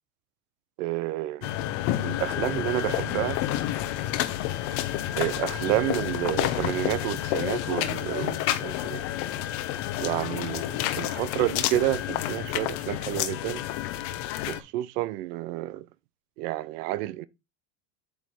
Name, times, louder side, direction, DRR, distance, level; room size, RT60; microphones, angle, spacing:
voice 1, 0.8-1.5 2.0-3.4 5.2-9.0 10.0-13.6 14.5-15.9 16.4-17.3, right 15 dB, 70° right, 0.8 m, -30 dB
sound 1, 1.4-14.6, left 13 dB, 55° left, 1.1 m, -29 dB
8.4 x 3.0 x 5.3 m
supercardioid pair, 110°, 49 cm